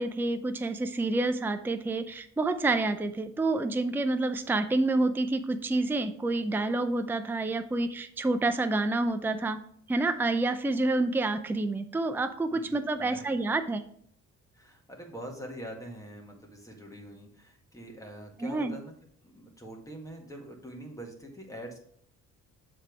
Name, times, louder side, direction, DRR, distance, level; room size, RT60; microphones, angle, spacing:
voice 1, 0.0-9.6 9.9-13.8 18.4-18.8, right 2 dB, 5° right, 9 dB, 0.5 m, -28 dB
voice 2, 12.5-13.3 14.5-18.9 19.2-21.8, equal, 10° left, 0 dB, 1.9 m, -44 dB
7.2 x 3.5 x 6.1 m, 0.64 s
cardioid pair, 90°, 30 cm